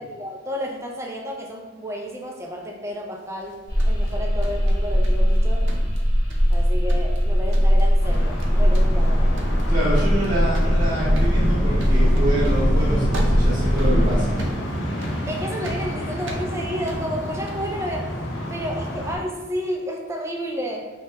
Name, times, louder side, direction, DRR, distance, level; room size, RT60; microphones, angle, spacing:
voice 1, 0.0-5.7 6.5-9.5 15.3-20.9, equal, 15° right, 0 dB, 0.3 m, -31 dB
sound 1, 3.4-5.4 5.7-6.6 6.9-7.2 7.5-7.9 8.1-8.5 8.7-17.7, right 1 dB, 75° right, 0.5 m, -37 dB
sound 2, 3.7-14.2, equal, 15° left, 0.8 m, -20 dB
sound 3, 8.0-19.2, equal, 75° left, 0.6 m, -29 dB
voice 2, 9.7-14.4, right 1 dB, 45° right, -11 dB, 0.8 m, -26 dB
2.9 x 2.2 x 3.3 m, 1.2 s
head